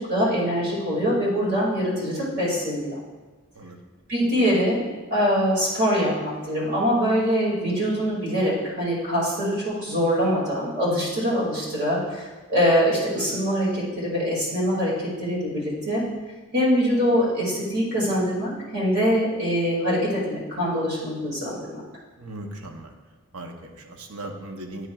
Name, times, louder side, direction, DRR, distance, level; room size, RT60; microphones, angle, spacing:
voice 1, 0.1-3.0 4.1-4.8 5.1-16.0 16.5-21.8, equal, 50° right, -6 dB, 2.1 m, -23 dB
voice 2, 22.2-22.9 23.3-24.9, right 1 dB, 85° right, 4 dB, 0.7 m, -38 dB
9.3 x 5.8 x 2.3 m, 1.3 s
head